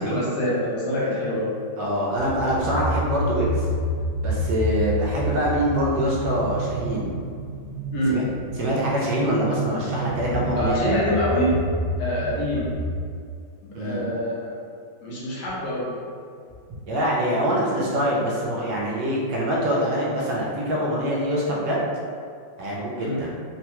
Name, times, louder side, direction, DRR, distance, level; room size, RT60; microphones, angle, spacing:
voice 1, 0.0-1.5 7.9-8.2 10.6-11.6 12.0-12.7 13.6-14.5 15.0-15.9 23.0-23.2, equal, 70° left, -7 dB, 1.3 m, -25 dB
voice 2, 1.8-3.7 4.2-7.2 8.1-8.2 8.6-11.1 13.7-14.0 16.9-21.8 22.6-23.3, equal, 75° right, -5 dB, 1.2 m, -24 dB
sound 1, 2.1-12.9, equal, 30° right, 1.0 m, -29 dB
3.7 x 2.1 x 2.9 m, 2.2 s
omnidirectional pair, 2.1 m